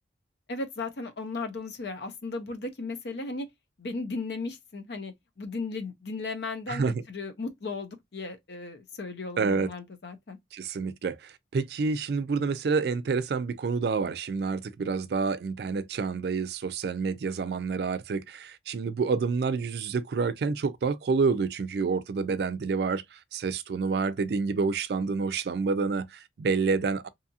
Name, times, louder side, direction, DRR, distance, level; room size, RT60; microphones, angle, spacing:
voice 1, 0.5-3.5 3.8-10.4, left 3 dB, 60° left, 0.6 m, -36 dB
voice 2, 6.7-7.0 9.4-9.7 10.5-27.1, right 4 dB, 60° right, 0.3 m, -28 dB
2.7 x 2.4 x 2.7 m
head